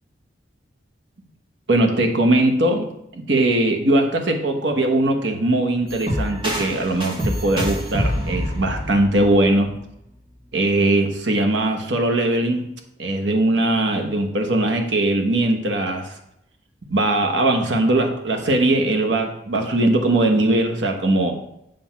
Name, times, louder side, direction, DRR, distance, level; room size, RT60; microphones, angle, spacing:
voice 1, 1.7-9.7 10.5-12.7 13.0-16.2 16.9-21.3, right 1 dB, 70° right, 3 dB, 1.1 m, -20 dB
sound 1, 5.9-9.8, equal, 25° right, 1.9 m, -26 dB
7.6 x 3.5 x 5.8 m, 0.78 s
head